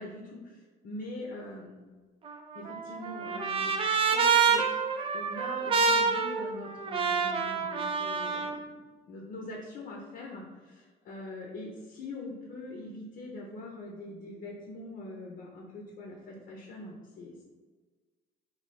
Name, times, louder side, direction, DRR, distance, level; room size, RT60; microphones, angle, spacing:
voice 1, 0.0-1.7 2.5-4.6 5.1-8.8 9.1-17.4, left 2 dB, 60° left, -1 dB, 0.8 m, -43 dB
Trumpet, 2.3-8.6, right 5 dB, 30° right, 0.4 m, -27 dB
3.2 x 2.8 x 4.2 m, 1.4 s
cardioid pair, 110°, 17 cm